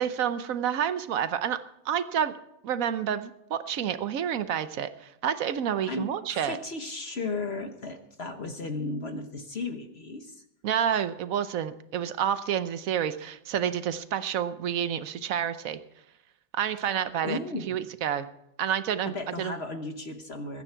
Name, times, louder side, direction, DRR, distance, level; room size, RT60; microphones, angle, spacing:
voice 1, 0.0-2.3 2.6-6.6 10.6-15.8 16.5-17.4 17.7-18.3 18.6-19.5, right 9 dB, 60° right, 12 dB, 0.9 m, -29 dB
voice 2, 5.9-10.4 17.2-17.7 19.0-20.6, left 3 dB, 40° left, 6 dB, 1.0 m, -35 dB
21.5 x 9.9 x 4.6 m, 0.82 s
omnidirectional pair, 2.2 m